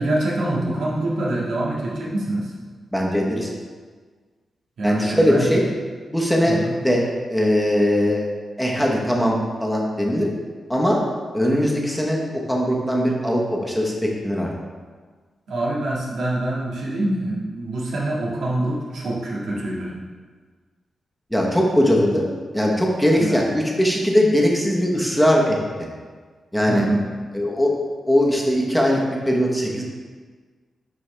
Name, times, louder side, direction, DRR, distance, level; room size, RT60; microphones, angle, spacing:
voice 1, 0.0-2.5 4.8-5.5 6.5-6.8 15.5-19.9 23.2-23.4 26.7-27.0, right 1 dB, 90° right, -5 dB, 1.6 m, -25 dB
voice 2, 2.9-3.5 4.8-5.6 6.1-6.6 6.8-7.0 7.3-8.2 8.6-10.3 10.7-11.0 11.3-14.5 21.3-22.3 22.5-25.6 26.5-26.9 27.3-27.7 28.1-29.8, equal, ahead, -2 dB, 1.0 m, -20 dB
11.0 x 4.2 x 3.3 m, 1.5 s
wide cardioid pair, 140°, 0 cm